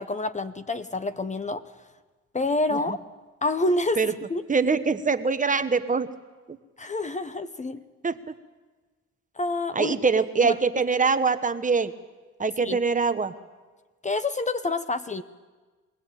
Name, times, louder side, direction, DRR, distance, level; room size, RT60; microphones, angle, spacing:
voice 1, 0.0-1.6 2.3-3.0 3.4-4.0 4.3-4.4 6.8-7.8 9.4-9.9 10.4-10.5 12.6-12.8 14.0-15.2, left 2 dB, 25° left, 12 dB, 0.9 m, -27 dB
voice 2, 4.5-6.1 6.5-6.6 8.0-8.2 9.7-11.9 12.4-13.3, right 4 dB, 25° right, 10 dB, 1.1 m, -23 dB
22.5 x 17.5 x 9.1 m, 1.3 s
cardioid pair, 90°, 30 cm